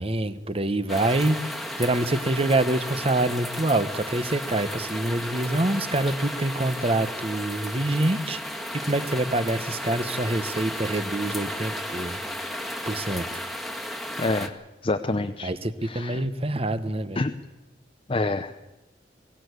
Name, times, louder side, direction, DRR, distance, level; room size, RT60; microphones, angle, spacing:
voice 1, 0.0-1.4 1.8-8.4 8.7-13.3 15.4-17.2, right 2 dB, 35° right, 13 dB, 1.1 m, -26 dB
sound 1, 0.9-14.5, equal, ahead, 1.7 m, -34 dB
voice 2, 14.2-15.5 15.8-16.2 17.2-17.3 18.1-18.6, left 2 dB, 30° left, 7 dB, 0.7 m, -27 dB
22.5 x 16.5 x 8.2 m, 1.0 s
head